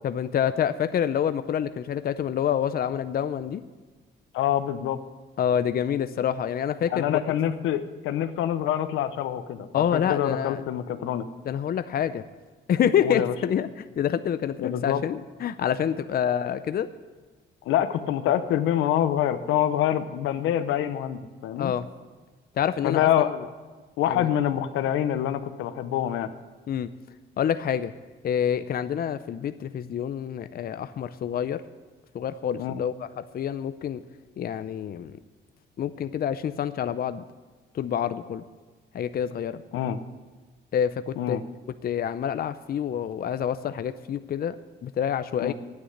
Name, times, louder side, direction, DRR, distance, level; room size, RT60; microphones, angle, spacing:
voice 1, 0.0-3.6 5.4-7.2 9.7-10.6 11.4-12.2 12.7-13.7 14.0-16.9 21.6-21.9 22.6-23.4 24.1-24.3 26.7-26.9 27.4-27.9 28.2-31.6 32.1-34.0 34.4-35.2 35.8-37.2 37.7-38.4 38.9-39.6 40.7-41.4 41.8-44.6 44.8-45.5, left 9 dB, 50° left, 12 dB, 0.6 m, -27 dB
voice 2, 4.3-5.0 6.8-11.3 13.0-13.3 14.6-15.0 17.7-21.7 22.8-23.4 24.0-26.3 32.6-32.8 39.7-40.0 41.2-41.4 45.4-45.5, left 11 dB, 90° left, 10 dB, 0.8 m, -26 dB
9.8 x 8.8 x 9.2 m, 1.4 s
cardioid pair, 90°, 20 cm